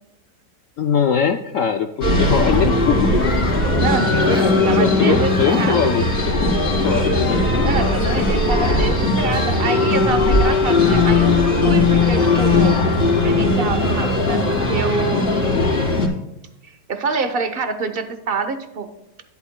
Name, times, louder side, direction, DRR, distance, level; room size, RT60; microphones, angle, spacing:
voice 1, 0.8-3.1 4.1-7.4 15.5-16.0, left 8 dB, 70° left, 6 dB, 0.7 m, -22 dB
sound 1, 2.0-16.1, left 2 dB, 45° left, 2.9 m, -18 dB
voice 2, 3.6-5.9 7.6-12.8 13.2-15.6 16.6-18.9, right 4 dB, 45° right, 8 dB, 0.8 m, -26 dB
11.5 x 11.5 x 2.2 m, 0.87 s
omnidirectional pair, 1.8 m